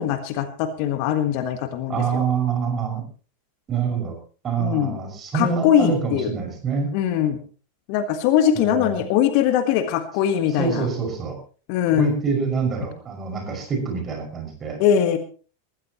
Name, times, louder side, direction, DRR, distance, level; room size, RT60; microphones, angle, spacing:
voice 1, 0.0-2.2 4.6-5.0 5.3-6.3 6.9-7.4 7.9-10.9 11.7-12.1 14.8-15.2, left 9 dB, 45° left, 9 dB, 1.6 m, -21 dB
voice 2, 1.9-3.0 3.7-4.2 4.4-6.9 8.5-9.0 10.6-11.4 11.9-14.8, right 5 dB, 25° right, 4 dB, 6.0 m, -26 dB
20.5 x 14.5 x 3.1 m, 0.38 s
figure-of-eight pair, 90°, 0 cm